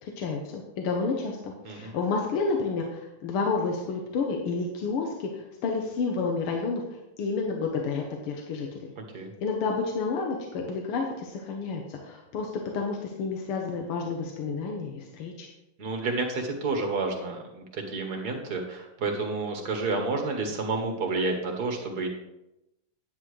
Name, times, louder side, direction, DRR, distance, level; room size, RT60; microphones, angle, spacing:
voice 1, 0.0-8.9 9.4-15.5, left 4 dB, 80° left, 1 dB, 1.9 m, -30 dB
voice 2, 9.0-9.3 15.8-22.1, right 3 dB, 50° right, 3 dB, 1.8 m, -30 dB
10.0 x 9.5 x 3.2 m, 0.90 s
omnidirectional pair, 2.4 m